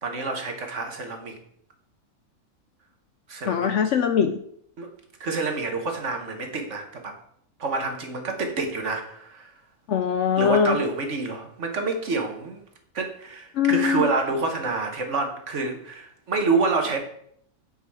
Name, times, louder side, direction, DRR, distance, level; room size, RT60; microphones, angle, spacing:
voice 1, 0.0-1.4 3.3-3.7 4.8-4.9 5.2-7.1 7.6-9.5 10.4-12.6 12.9-17.0, right 3 dB, 55° right, 4 dB, 1.5 m, -27 dB
voice 2, 3.5-4.3 9.9-10.8 13.6-14.1, left 7 dB, 65° left, 8 dB, 0.8 m, -21 dB
8.4 x 5.5 x 4.9 m, 0.68 s
omnidirectional pair, 1.6 m